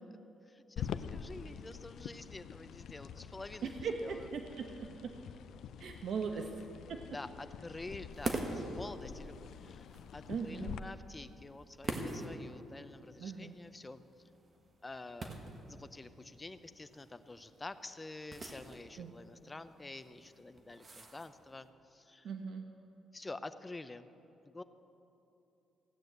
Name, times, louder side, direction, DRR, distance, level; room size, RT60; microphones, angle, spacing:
voice 1, 0.5-4.3 6.3-6.5 7.1-14.0 14.8-15.3 15.7-22.3 23.1-24.1 24.4-24.6, left 2 dB, 15° left, 11 dB, 0.6 m, -48 dB
sound 1, 0.8-10.8, left 8 dB, 70° left, 0.5 m, -46 dB
voice 2, 3.6-5.1 5.8-6.5 6.9-7.0 10.3-10.8 13.2-13.6 19.0-19.1 22.2-22.7, right 5 dB, 60° right, 4 dB, 0.9 m, -39 dB
sound 2, 8.1-21.7, right 2 dB, 35° right, 1.5 m, -45 dB
15.5 x 9.2 x 7.9 m, 2.9 s
cardioid pair, 120°, 0 cm